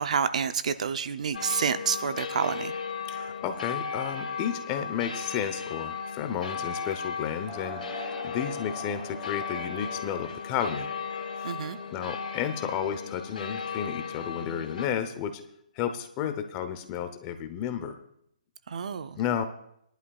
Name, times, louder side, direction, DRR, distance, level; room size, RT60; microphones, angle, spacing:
voice 1, 0.0-2.7 11.4-11.8 18.7-19.2, right 6 dB, 55° right, 12 dB, 0.6 m, -28 dB
sound 1, 1.3-14.9, left 6 dB, 70° left, 1.9 m, -36 dB
voice 2, 3.1-10.9 11.4-11.5 11.9-15.4 15.8-18.0 19.2-19.5, left 8 dB, 20° left, 9 dB, 0.7 m, -32 dB
sound 2, 7.5-12.5, equal, 5° left, 1.8 m, -45 dB
19.5 x 11.5 x 2.4 m, 0.74 s
hypercardioid pair, 165°, 5 cm